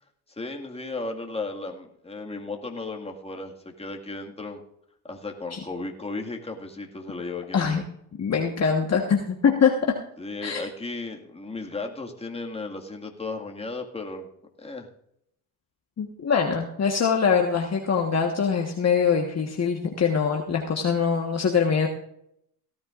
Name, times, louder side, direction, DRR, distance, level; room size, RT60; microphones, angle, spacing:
voice 1, 0.3-4.6 5.0-7.8 10.2-14.3 14.6-14.9, left 3 dB, 10° left, 2 dB, 2.0 m, -35 dB
voice 2, 8.2-10.0 10.4-10.6 16.0-21.9, left 6 dB, 35° left, 2 dB, 1.4 m, -23 dB
18.0 x 12.5 x 2.5 m, 0.73 s
supercardioid pair, 80°, 47 cm